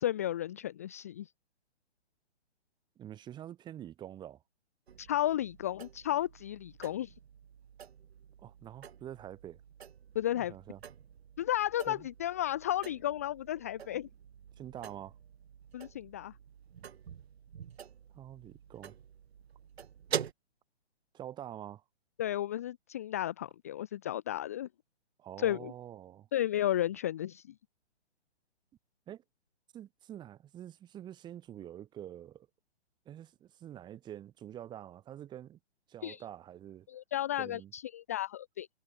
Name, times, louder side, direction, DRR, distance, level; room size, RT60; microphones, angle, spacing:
voice 1, 0.0-1.3 5.0-7.2 10.1-10.5 11.4-14.1 15.7-16.3 22.2-24.7 25.4-25.7 26.3-27.5 36.0-36.2 36.9-38.7, left 12 dB, 15° left, 0.4 m, -33 dB
voice 2, 3.0-4.4 8.4-9.6 10.3-10.8 11.9-12.1 13.9-14.0 14.6-15.1 18.1-18.9 21.1-21.8 25.2-26.3 29.1-29.2 29.7-32.5 33.1-35.6 35.9-36.9 37.4-37.7, right 11 dB, 15° right, 1.9 m, -46 dB
sound 1, 4.9-20.3, right 8 dB, 65° right, 1.4 m, -46 dB
hypercardioid pair, 150°, 34 cm